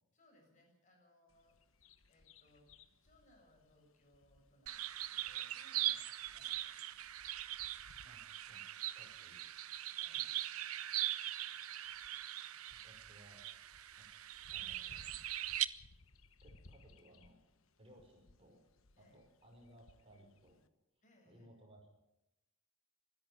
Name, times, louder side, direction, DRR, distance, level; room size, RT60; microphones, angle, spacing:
voice 1, 0.1-1.6 2.1-2.7 3.0-7.3 10.0-10.4 19.0-19.2 21.0-21.5, left 1 dB, 35° left, 1 dB, 7.3 m, -69 dB
Bird vocalization bird call bird song, 1.3-20.7, left 3 dB, 65° left, 1.2 m, -66 dB
sound 1, 4.7-15.7, right 14 dB, 85° right, 0.9 m, -41 dB
voice 2, 8.5-9.5 12.8-13.4 13.9-14.0 14.5-15.2 16.4-17.4 17.8-18.6 19.1-20.6 21.3-21.9, equal, 25° right, 1 dB, 5.5 m, -62 dB
25.0 x 11.0 x 9.5 m, 0.92 s
head